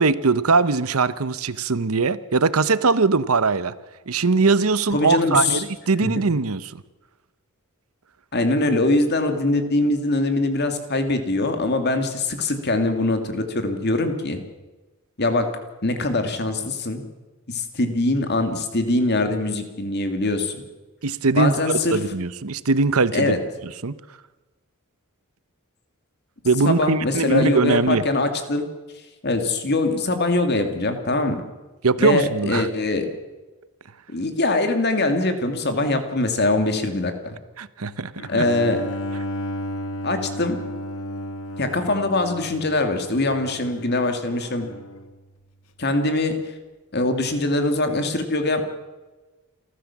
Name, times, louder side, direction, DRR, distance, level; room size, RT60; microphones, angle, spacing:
voice 1, 0.0-3.7 4.1-6.8 21.0-23.4 23.6-23.9 26.4-28.0 31.8-32.7 37.6-38.4, right 4 dB, 80° right, 16 dB, 0.9 m, -21 dB
voice 2, 4.9-5.6 6.0-6.1 8.3-14.4 15.2-15.5 15.8-17.0 17.5-20.6 21.4-22.0 23.1-23.4 26.6-28.6 29.2-31.4 32.0-33.1 34.1-37.4 38.3-38.8 40.0-40.6 41.6-44.7 45.8-46.4 46.9-48.6, left 2 dB, 50° left, 7 dB, 2.7 m, -22 dB
Bowed string instrument, 38.2-45.2, equal, 80° left, 1.5 m, -33 dB
28.0 x 14.5 x 7.4 m, 1.2 s
head